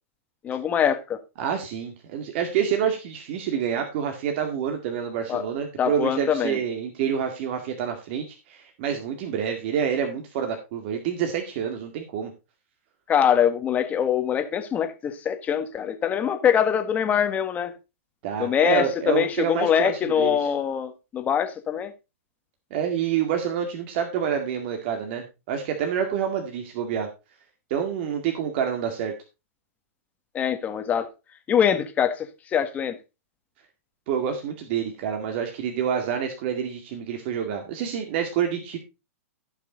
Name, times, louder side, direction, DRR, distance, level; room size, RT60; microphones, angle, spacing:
voice 1, 0.4-1.2 5.3-5.4 5.8-6.6 13.1-17.7 18.4-21.9 30.3-31.1 31.5-33.0, left 8 dB, 20° left, 1.4 m, -23 dB
voice 2, 1.4-12.3 18.2-20.4 22.7-27.1 27.7-29.1 34.1-38.8, right 8 dB, 45° right, 2.0 m, -27 dB
15.5 x 5.8 x 3.9 m
hypercardioid pair, 145°, 8 cm